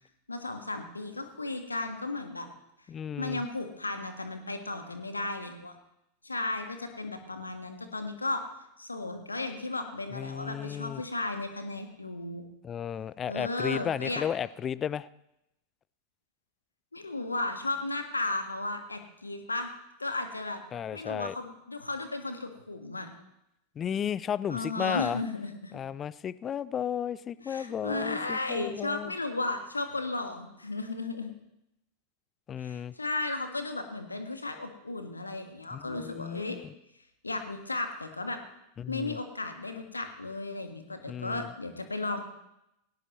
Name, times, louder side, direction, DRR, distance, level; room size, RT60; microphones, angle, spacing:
voice 1, 0.3-2.5 3.2-5.7 6.2-8.4 8.8-12.4 13.3-14.2 16.9-19.7 20.0-20.6 20.9-23.1 24.5-25.8 27.4-31.3 32.6-36.6 37.2-38.4 38.9-42.2, left 2 dB, 80° left, 6 dB, 1.7 m, -34 dB
voice 2, 2.9-3.4 10.1-11.0 12.6-15.1 20.7-21.3 23.8-25.2 25.7-29.1 32.5-32.9 35.7-36.6 38.8-39.2 41.1-41.5, left 8 dB, 25° left, 20 dB, 0.5 m, -34 dB
19.0 x 17.5 x 3.1 m, 0.85 s
figure-of-eight pair, 90°, 0 cm